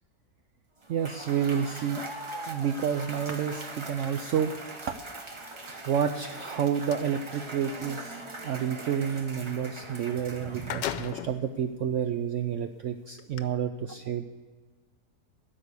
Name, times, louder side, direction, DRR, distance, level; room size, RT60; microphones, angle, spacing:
Cheering / Applause / Crowd, 0.8-11.3, right 2 dB, 25° right, 0.6 m, -41 dB
voice 1, 0.9-2.0 2.5-4.5 4.9-5.0 5.6-14.2, right 8 dB, 80° right, 7 dB, 0.7 m, -30 dB
sound 1, 6.3-7.1 10.0-10.1 10.4-11.5 12.1-12.2 13.2-13.4, left 10 dB, 90° left, 1.3 m, -36 dB
13.0 x 5.4 x 8.3 m, 1.4 s
omnidirectional pair, 1.8 m